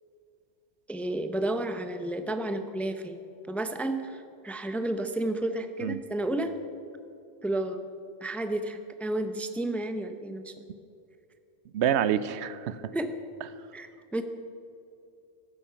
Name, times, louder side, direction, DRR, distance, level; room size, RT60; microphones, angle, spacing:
voice 1, 0.9-3.2 3.5-6.6 7.4-7.8 8.2-10.6 12.9-13.1 13.7-14.2, right 1 dB, ahead, 8 dB, 0.6 m, -31 dB
voice 2, 11.7-12.8, right 9 dB, 80° right, 15 dB, 0.9 m, -27 dB
15.0 x 11.5 x 5.7 m, 2.6 s
omnidirectional pair, 1.1 m